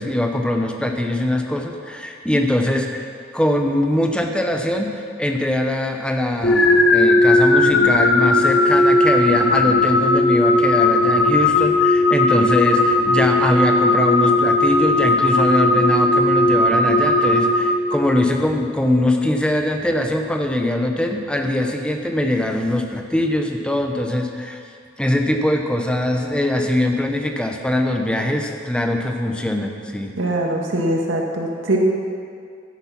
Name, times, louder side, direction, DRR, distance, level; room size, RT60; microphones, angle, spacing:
voice 1, 0.0-3.1 3.3-24.6 25.0-30.1, left 1 dB, 5° left, 3 dB, 0.9 m, -22 dB
sound 1, 6.4-18.4, left 2 dB, 65° left, 0.9 m, -17 dB
voice 2, 30.2-31.8, right 1 dB, 90° right, 0 dB, 2.0 m, -22 dB
12.5 x 10.5 x 5.9 m, 2.2 s
head